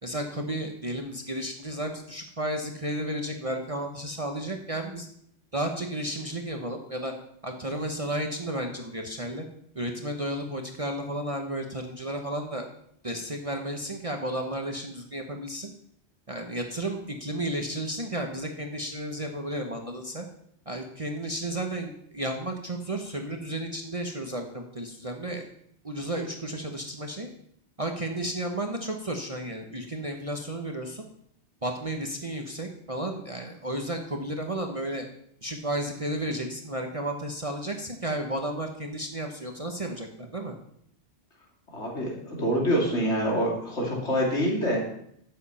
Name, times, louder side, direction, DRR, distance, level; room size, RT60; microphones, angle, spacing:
voice 1, 0.0-5.1 5.5-7.1 7.4-9.4 9.7-12.7 13.0-15.7 16.3-20.3 20.7-25.4 25.8-27.3 27.8-31.0 31.6-35.0 35.4-40.5, right 1 dB, 30° right, 3 dB, 1.2 m, -33 dB
voice 2, 41.7-44.8, equal, 70° left, -1 dB, 3.1 m, -26 dB
13.0 x 7.6 x 5.7 m, 0.69 s
omnidirectional pair, 1.2 m